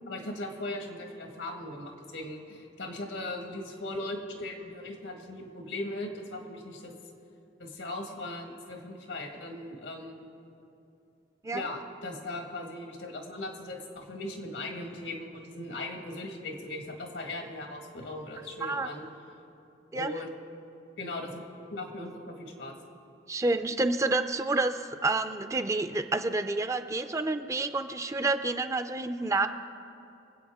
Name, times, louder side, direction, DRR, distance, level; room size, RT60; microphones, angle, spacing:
voice 1, 0.1-6.9 7.6-10.3 11.5-19.1 19.9-20.3 21.0-21.4 21.7-22.8, left 2 dB, 90° left, 2 dB, 1.8 m, -38 dB
voice 2, 23.3-29.5, right 2 dB, 15° right, 9 dB, 0.4 m, -29 dB
25.0 x 8.4 x 3.6 m, 2.7 s
head